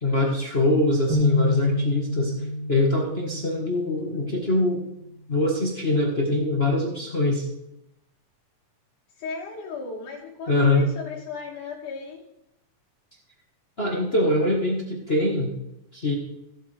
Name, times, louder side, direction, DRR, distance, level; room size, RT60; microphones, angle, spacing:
voice 1, 0.0-2.3 2.7-4.8 5.3-7.5 10.5-10.9 13.8-15.5 15.9-16.2, left 2 dB, 35° left, -1 dB, 0.9 m, -23 dB
sound 1, 1.1-4.6, left 2 dB, 50° right, 2.0 m, -27 dB
voice 2, 9.2-12.2, left 4 dB, 80° left, -3 dB, 3.1 m, -36 dB
17.0 x 7.7 x 3.4 m, 0.84 s
omnidirectional pair, 3.5 m